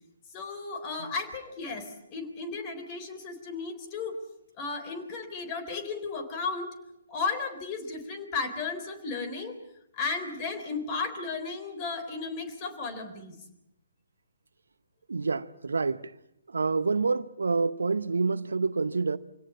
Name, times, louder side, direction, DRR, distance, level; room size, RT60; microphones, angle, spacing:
voice 1, 0.3-4.2 4.6-6.8 7.1-9.6 9.9-13.4, left 4 dB, 25° left, 3.8 m, -34 dB
voice 2, 15.1-16.1 16.5-19.2, right 4 dB, 70° right, 0.8 m, -28 dB
25.5 x 17.5 x 8.5 m
figure-of-eight pair, 130°, 0 cm